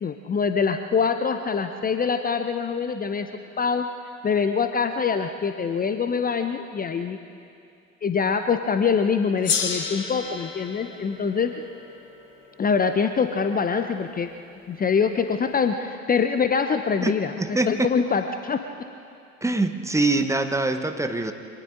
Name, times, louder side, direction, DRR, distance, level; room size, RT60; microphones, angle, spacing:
voice 1, 0.0-3.3 3.6-3.9 4.2-7.2 8.0-11.5 12.6-14.3 14.7-17.3 17.7-18.6, left 6 dB, 20° left, 8 dB, 0.9 m, -24 dB
Gong, 9.4-14.2, left 6 dB, 70° left, 2.2 m, -32 dB
voice 2, 17.0-17.9 19.4-21.3, right 2 dB, 5° right, 6 dB, 1.2 m, -24 dB
28.5 x 25.5 x 3.9 m, 2.5 s
figure-of-eight pair, 65°, 39 cm